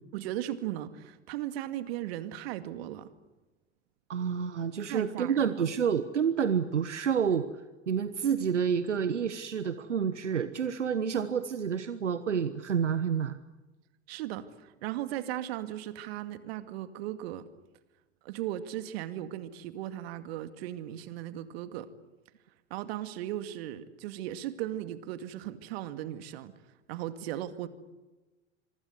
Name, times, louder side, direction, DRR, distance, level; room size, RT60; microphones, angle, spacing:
voice 1, 0.1-3.1 4.9-5.5 14.1-17.5 18.2-21.9 22.7-26.6 26.9-27.7, right 13 dB, 60° right, 10 dB, 2.3 m, -37 dB
voice 2, 4.1-7.5 7.9-13.4, right 7 dB, 80° right, 12 dB, 1.2 m, -29 dB
26.0 x 24.0 x 8.1 m, 1.2 s
figure-of-eight pair, 85°, 35 cm